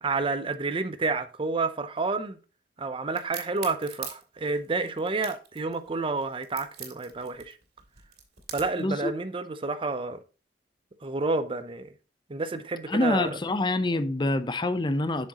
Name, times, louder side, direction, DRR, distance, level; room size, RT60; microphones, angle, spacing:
voice 1, 0.0-2.4 2.8-7.5 8.5-10.2 11.0-11.9 12.3-13.4, right 3 dB, 30° right, 0.6 m, -29 dB
Crack, 3.2-8.9, right 8 dB, 60° right, 2.3 m, -41 dB
voice 2, 12.9-15.3, left 2 dB, 25° left, 0.7 m, -26 dB
7.7 x 6.4 x 2.9 m
head